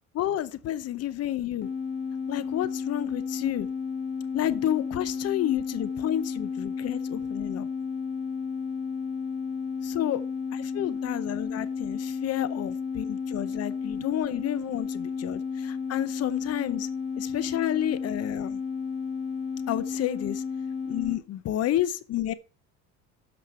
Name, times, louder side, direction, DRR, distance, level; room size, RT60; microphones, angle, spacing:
voice 1, 0.1-1.7 2.3-3.7 4.3-7.7 9.8-10.2 10.5-16.9 17.2-18.6 19.7-20.4 20.9-22.3, left 12 dB, 50° left, 0.8 m, -30 dB
sound 1, 1.6-21.2, left 5 dB, 30° left, 1.3 m, -32 dB
13.0 x 5.2 x 4.3 m
supercardioid pair, 95°, 33 cm